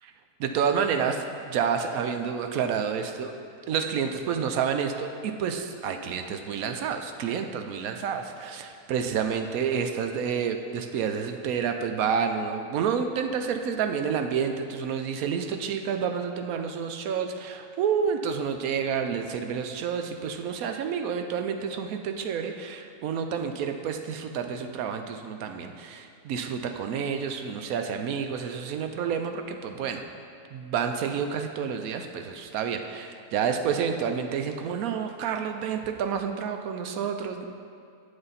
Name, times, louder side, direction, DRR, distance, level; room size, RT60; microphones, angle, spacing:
voice 1, 0.4-3.3 3.7-30.0 30.5-37.5, right 7 dB, 70° right, 6 dB, 1.0 m, -29 dB
9.0 x 6.5 x 4.1 m, 2.3 s
omnidirectional pair, 1.7 m